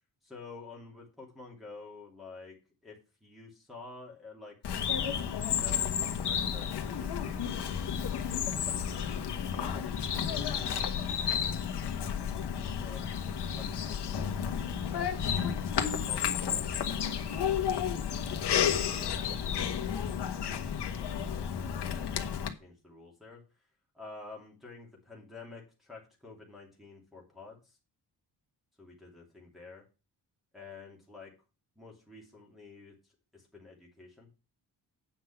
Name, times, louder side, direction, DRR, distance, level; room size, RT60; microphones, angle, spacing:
voice 1, 0.2-2.6 2.8-4.5 5.5-11.6 12.8-13.0 13.5-15.5 15.8-16.9 21.0-23.7 23.9-27.8 28.8-29.8 30.5-31.3 31.7-33.0 33.3-34.3, left 3 dB, ahead, -4 dB, 2.8 m, -50 dB
Bird vocalization bird call bird song, 4.6-22.5, left 8 dB, 70° left, 1.5 m, -32 dB
8.5 x 5.9 x 5.8 m, 0.31 s
wide cardioid pair, 150°, 42 cm